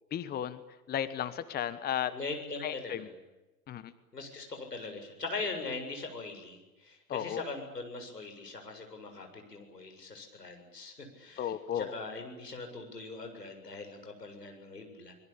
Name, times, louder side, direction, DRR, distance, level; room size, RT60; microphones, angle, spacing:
voice 1, 0.1-0.6 0.9-2.1 2.6-3.1 3.7-3.9 7.1-7.4 11.4-11.9, left 10 dB, 20° left, 14 dB, 1.3 m, -34 dB
voice 2, 2.1-3.1 4.1-15.1, left 3 dB, 90° left, 5 dB, 7.5 m, -41 dB
24.5 x 22.5 x 8.8 m, 1.1 s
figure-of-eight pair, 105°, 47 cm